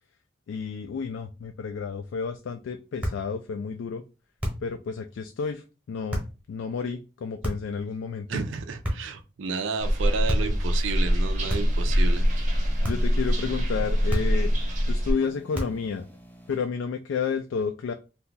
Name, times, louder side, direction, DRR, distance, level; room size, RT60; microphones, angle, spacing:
voice 1, 0.5-4.0 4.6-6.2 6.5-8.4 12.8-14.5 14.9-16.1 16.5-17.9, left 5 dB, 80° left, 6 dB, 0.3 m, -31 dB
sound 1, 3.0-3.3 4.4-4.8 6.1-6.4 7.4-7.8 8.8-9.2 10.3-10.6 11.5-11.9 12.8-13.2 14.1-14.5 15.5-15.9, equal, 5° right, 0.9 m, -31 dB
voice 2, 8.3-12.6, right 5 dB, 80° right, 8 dB, 0.4 m, -32 dB
sound 2, 9.8-15.1, equal, 40° right, 0.7 m, -24 dB
sound 3, 11.4-16.6, equal, 10° left, 0.4 m, -50 dB
2.7 x 2.3 x 3.8 m, 0.31 s
head